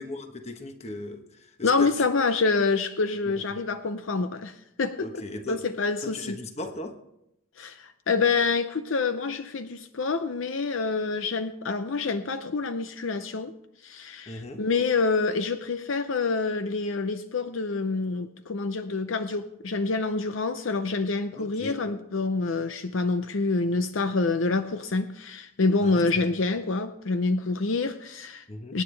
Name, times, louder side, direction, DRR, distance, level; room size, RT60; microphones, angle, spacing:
voice 1, 0.0-1.9 3.3-3.4 5.0-5.6 6.0-7.0 14.3-14.6 21.4-21.8 25.8-26.1 28.5-28.8, left 2 dB, 30° left, 5 dB, 1.1 m, -37 dB
voice 2, 1.6-5.1 5.5-6.4 7.6-13.5 13.8-28.4 28.7-28.8, left 4 dB, 70° left, 10 dB, 0.6 m, -27 dB
24.0 x 9.6 x 3.4 m, 0.80 s
head